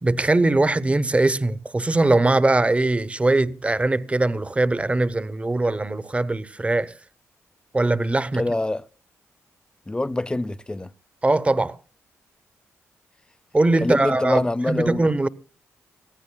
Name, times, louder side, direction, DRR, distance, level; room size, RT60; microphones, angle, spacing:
voice 1, 0.0-6.9 7.7-8.4 11.2-11.8 13.5-15.3, right 2 dB, 20° right, 0.8 m, -21 dB
voice 2, 8.3-8.8 9.9-10.9 13.8-15.1, left 2 dB, 15° left, 0.6 m, -25 dB
23.5 x 15.0 x 2.2 m
cardioid pair, 65°, 6 cm